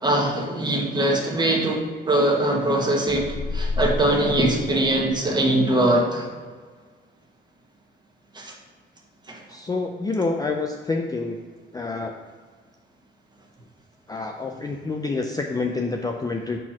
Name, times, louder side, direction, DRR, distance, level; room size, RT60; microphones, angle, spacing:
voice 1, 0.0-6.3 8.3-8.5 9.3-9.4, right 1 dB, 20° right, 0 dB, 1.3 m, -22 dB
sound 1, 3.1-5.5, left 2 dB, 60° left, 0.6 m, -30 dB
voice 2, 9.5-11.4 11.7-12.1 14.1-16.6, left 3 dB, 20° left, 3 dB, 0.4 m, -27 dB
4.5 x 4.2 x 5.8 m, 1.5 s
cardioid pair, 90°, 20 cm